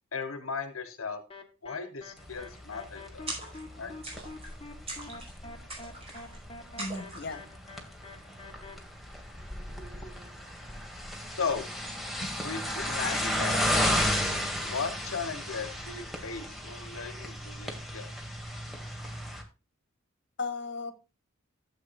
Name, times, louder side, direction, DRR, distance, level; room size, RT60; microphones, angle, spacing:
voice 1, 0.1-1.2 1.6-3.3 3.8-3.9 11.4-11.7 12.4-13.6 14.6-18.1, left 5 dB, 80° left, 9 dB, 1.2 m, -36 dB
sound 1, 1.3-8.7, left 2 dB, 25° left, 1.4 m, -47 dB
sound 2, 2.2-19.4, equal, ahead, 1.8 m, -34 dB
sound 3, 3.3-3.7 4.0-4.5 4.9-5.3 5.7-6.4 6.8-7.4, right 2 dB, 30° right, 5.0 m, -41 dB
voice 2, 6.8-7.4 12.2-12.3 20.4-20.9, left 3 dB, 55° left, 8 dB, 1.5 m, -35 dB
13.5 x 7.9 x 2.6 m, 0.31 s
head